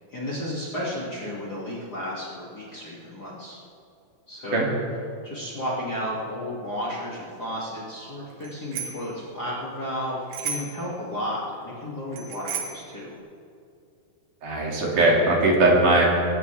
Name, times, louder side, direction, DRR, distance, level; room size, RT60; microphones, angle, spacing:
voice 1, 0.1-3.6 4.3-4.7 5.2-13.1, left 1 dB, 30° left, -7 dB, 2.7 m, -33 dB
Bicycle bell, 8.4-9.1 10.3-10.9 12.1-12.9, right 7 dB, 80° right, 3.5 m, -33 dB
voice 2, 14.4-16.1, right 2 dB, 60° right, -3 dB, 4.0 m, -19 dB
23.0 x 15.5 x 3.5 m, 2.4 s
omnidirectional pair, 4.3 m